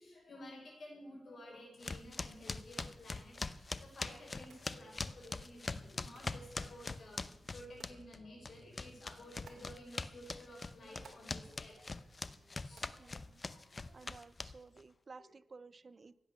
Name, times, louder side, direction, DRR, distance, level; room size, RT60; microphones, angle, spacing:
voice 1, 0.0-14.1 15.2-15.3, left 1 dB, 55° left, 0 dB, 5.8 m, -54 dB
sound 1, 1.8-8.2 8.4-14.8, left 3 dB, 35° left, 0.6 m, -42 dB
sound 2, 2.6-14.1, right 5 dB, 70° right, 2.2 m, -67 dB
voice 2, 13.0-13.4 13.9-16.1, right 4 dB, 40° right, 18 dB, 0.4 m, -55 dB
16.0 x 8.6 x 6.7 m, 0.94 s
wide cardioid pair, 100°, 0 cm